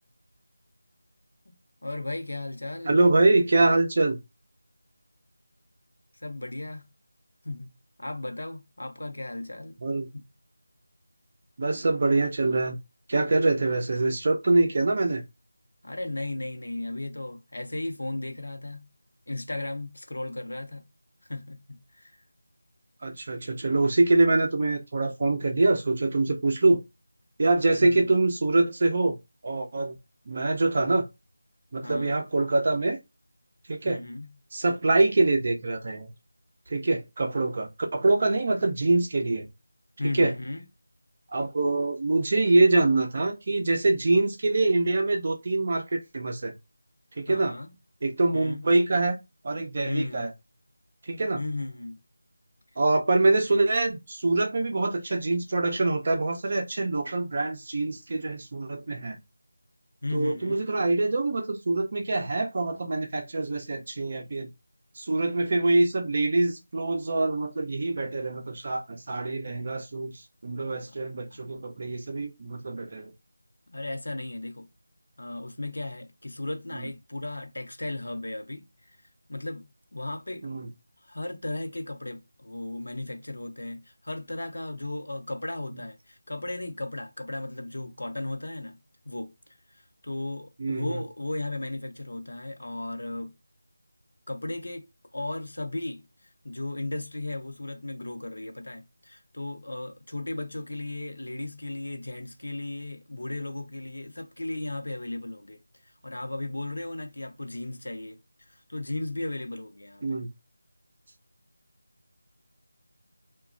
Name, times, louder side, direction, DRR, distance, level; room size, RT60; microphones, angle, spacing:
voice 1, 1.8-3.0 6.1-6.9 7.4-7.7 8.0-9.8 10.1-10.2 15.8-18.9 19.3-20.9 21.2-22.2 27.8-28.1 31.8-32.1 33.8-34.3 40.0-40.6 47.3-47.8 48.3-48.6 49.8-50.2 51.4-52.0 60.0-60.7 71.3-71.4 73.7-74.7 75.2-78.7 79.3-80.5 81.0-88.8 89.0-89.3 89.7-93.3 94.3-94.9 95.1-110.2, left 2 dB, 85° left, 0.7 m, -35 dB
voice 2, 2.8-4.2 9.8-10.1 11.6-12.8 13.1-15.2 23.0-26.8 27.4-29.2 29.4-30.0 30.3-31.0 31.7-33.0 33.7-34.0 34.5-36.1 36.7-39.5 40.1-40.3 41.3-46.5 47.2-47.6 48.0-49.2 49.4-50.3 51.0-51.4 52.8-59.2 60.1-64.5 65.0-73.1 80.4-80.7 90.6-91.0 110.0-110.3, right 2 dB, 35° right, 0.5 m, -24 dB
3.0 x 2.2 x 2.5 m
figure-of-eight pair, 175°, 0 cm